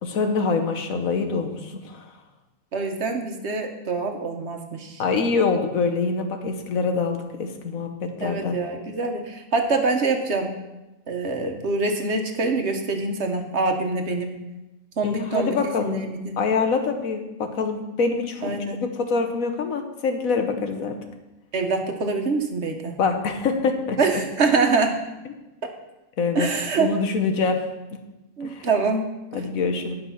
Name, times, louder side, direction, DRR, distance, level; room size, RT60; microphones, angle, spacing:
voice 1, 0.0-2.1 5.0-8.6 15.0-16.1 16.4-18.5 19.0-21.0 23.0-24.0 26.2-26.5 26.8-27.6 28.4-28.7 29.3-29.9, left 4 dB, 75° left, 5 dB, 1.4 m, -25 dB
voice 2, 2.7-5.0 8.2-10.6 11.1-14.4 15.0-16.4 18.4-18.8 21.5-23.0 24.0-25.0 26.3-27.0 28.4-29.4, right 3 dB, 55° right, 4 dB, 1.2 m, -25 dB
10.5 x 5.5 x 5.6 m, 1.0 s
omnidirectional pair, 1.5 m